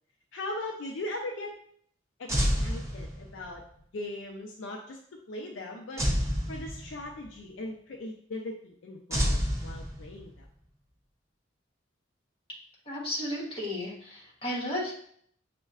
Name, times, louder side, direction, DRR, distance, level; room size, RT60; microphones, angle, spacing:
voice 1, 0.3-1.5 2.2-3.6 3.9-5.0 5.3-6.1 6.5-10.5, left 1 dB, 65° left, 1 dB, 0.4 m, -39 dB
sound 1, 2.3-3.6 6.0-7.2 9.1-10.4, equal, 15° right, 0.5 m, -29 dB
voice 2, 12.8-15.0, left 1 dB, 25° left, -4 dB, 1.2 m, -34 dB
6.2 x 2.1 x 2.3 m, 0.63 s
head